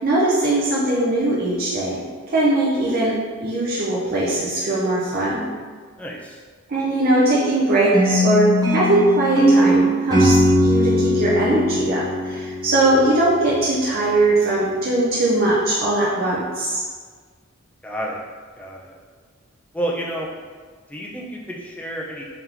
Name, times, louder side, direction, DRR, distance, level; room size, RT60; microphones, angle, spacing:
voice 1, 0.0-5.5 6.7-16.8, right 2 dB, 45° right, -6 dB, 0.6 m, -20 dB
voice 2, 6.0-6.4 17.8-18.2 18.6-19.0 19.7-20.3 20.9-22.2, right 1 dB, 5° left, -3 dB, 0.5 m, -30 dB
sound 1, 7.9-13.1, equal, 20° right, 0.8 m, -19 dB
3.9 x 3.4 x 2.9 m, 1.5 s
head